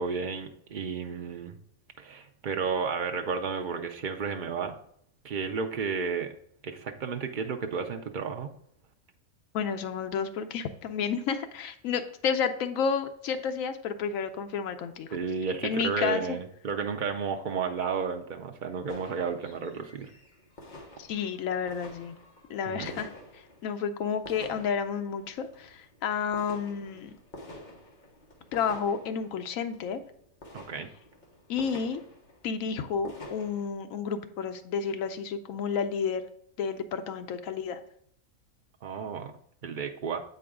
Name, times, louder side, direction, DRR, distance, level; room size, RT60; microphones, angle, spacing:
voice 1, 0.0-1.6 2.0-4.8 5.2-6.3 6.6-8.5 15.1-20.1 22.7-23.0 30.5-30.9 38.8-39.3 39.6-40.2, right 5 dB, 65° right, 5 dB, 0.4 m, -32 dB
voice 2, 9.5-15.2 15.6-16.2 21.0-22.1 22.5-27.1 28.5-30.0 31.5-32.0 32.4-36.2 36.6-37.8, left 6 dB, 75° left, 8 dB, 1.0 m, -31 dB
sound 1, 18.9-33.7, left 1 dB, 35° left, 1.2 m, -49 dB
7.7 x 4.6 x 3.6 m, 0.68 s
omnidirectional pair, 1.5 m